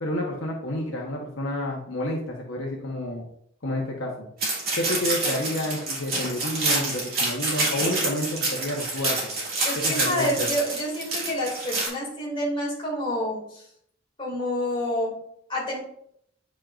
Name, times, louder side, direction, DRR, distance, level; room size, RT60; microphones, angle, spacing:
voice 1, 0.0-3.3 3.6-4.3 4.8-9.2 9.8-10.5, left 1 dB, 65° left, -1 dB, 1.1 m, -29 dB
sound 1, 4.4-11.9, right 2 dB, 45° right, 2.6 m, -27 dB
voice 2, 9.6-13.7 14.2-15.2 15.5-15.8, equal, 25° left, -3 dB, 2.2 m, -28 dB
8.8 x 5.5 x 2.5 m, 0.69 s
head